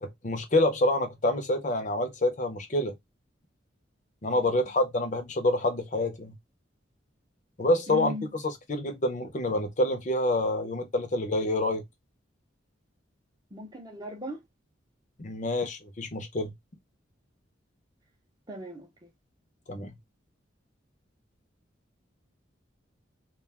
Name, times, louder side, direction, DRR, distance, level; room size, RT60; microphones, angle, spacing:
voice 1, 0.0-2.9 4.2-6.4 7.6-8.1 8.7-11.8 15.2-16.5 19.7-19.9, left 1 dB, 40° left, 0.6 m, -27 dB
voice 2, 4.3-4.7 7.9-8.3 13.5-14.4 18.5-19.1, equal, 20° right, 0.6 m, -39 dB
2.4 x 2.3 x 3.4 m
head